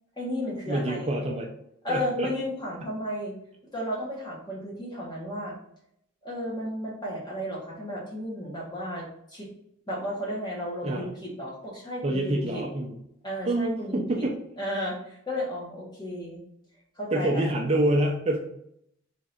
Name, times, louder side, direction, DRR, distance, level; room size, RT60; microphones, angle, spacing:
voice 1, 0.2-1.1 1.8-3.3 3.7-5.5 6.2-9.5 9.9-12.6 13.2-14.2 14.6-16.4 16.9-17.5, equal, 20° left, -4 dB, 1.2 m, -33 dB
voice 2, 0.7-1.5 1.9-2.3 10.8-11.1 12.0-12.9 13.4-14.4 17.1-18.4, right 1 dB, 30° right, 0 dB, 0.5 m, -26 dB
3.6 x 3.3 x 4.2 m, 0.76 s
head